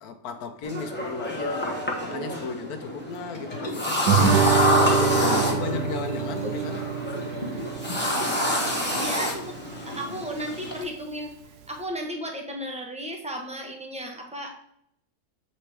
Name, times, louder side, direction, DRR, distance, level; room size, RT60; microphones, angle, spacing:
voice 1, 0.0-4.6 5.0-6.9 7.7-7.8, left 5 dB, 75° left, 1.2 m, -35 dB
sound 1, 0.6-10.8, left 1 dB, 10° left, 0.9 m, -27 dB
Liquid, 3.3-11.0 11.4-11.5, left 1 dB, 35° left, 0.9 m, -40 dB
Guitar, 4.1-9.1, right 6 dB, 85° right, 1.2 m, -26 dB
voice 2, 8.8-9.6 9.9-11.3 11.7-14.5, right 1 dB, 5° right, 0.5 m, -34 dB
7.3 x 4.2 x 3.3 m
omnidirectional pair, 1.7 m